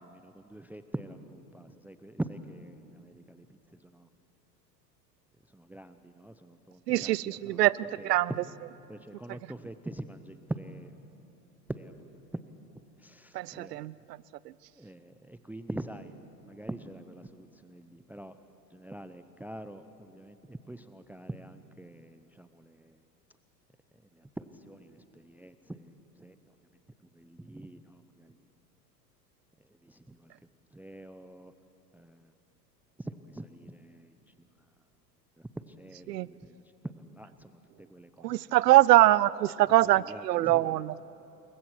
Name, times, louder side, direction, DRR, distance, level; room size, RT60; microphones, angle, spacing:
voice 1, 0.0-4.1 5.5-7.7 8.0-8.4 8.9-10.9 11.7-12.5 13.0-13.9 14.8-16.2 16.5-18.4 18.7-23.0 24.1-26.4 27.1-28.4 29.6-30.3 30.7-31.5 31.9-32.3 33.0-34.2 35.4-37.5 37.8-38.5 39.9-40.8, right 1 dB, 5° right, 11 dB, 0.6 m, -44 dB
voice 2, 6.9-8.3 13.3-13.9 36.1-36.3 38.2-41.0, right 15 dB, 70° right, 21 dB, 0.7 m, -23 dB
28.5 x 22.5 x 6.2 m, 2.9 s
hypercardioid pair, 90°, 50 cm